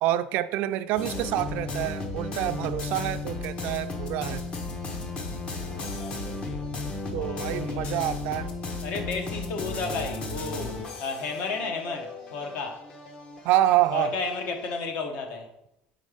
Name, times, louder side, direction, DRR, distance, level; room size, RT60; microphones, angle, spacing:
voice 1, 0.0-4.4 7.1-8.5 13.4-14.1, right 13 dB, 60° right, 0.3 m, -27 dB
sound 1, 0.9-14.8, left 3 dB, 35° left, 0.8 m, -35 dB
voice 2, 5.6-6.7 7.1-8.0 8.8-12.8 13.9-15.5, left 4 dB, 60° left, 1.0 m, -33 dB
5.3 x 3.8 x 4.9 m
cardioid pair, 155°, 3 cm